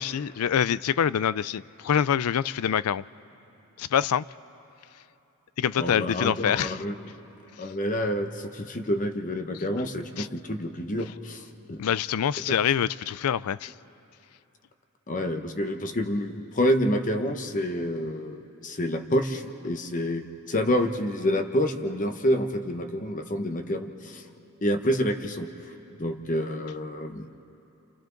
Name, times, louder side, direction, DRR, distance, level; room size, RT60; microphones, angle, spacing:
voice 1, 0.0-3.0 3.8-4.2 5.6-6.8 10.2-10.3 11.8-13.7, left 8 dB, 75° left, 19 dB, 0.4 m, -25 dB
voice 2, 5.8-7.1 7.6-11.8 15.1-24.3 24.6-25.7 26.0-27.3, equal, 35° left, 6 dB, 0.9 m, -28 dB
29.0 x 28.5 x 3.9 m, 3.0 s
head